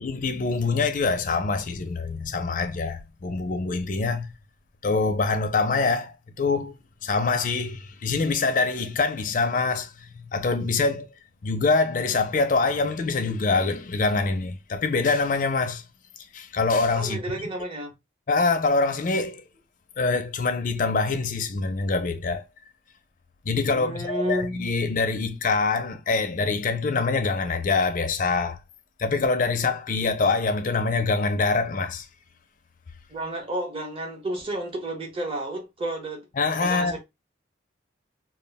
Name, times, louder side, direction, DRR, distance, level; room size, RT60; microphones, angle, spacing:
voice 1, 0.0-4.3 4.8-6.8 7.0-11.1 11.4-15.8 16.3-17.2 18.3-19.4 20.0-22.5 23.4-28.6 29.0-32.1 36.4-37.0, left 4 dB, 40° left, 0.4 m, -25 dB
voice 2, 16.9-18.0 23.7-24.7 33.1-36.3 36.6-37.0, right 1 dB, 30° right, 0.8 m, -31 dB
2.3 x 2.1 x 3.3 m
head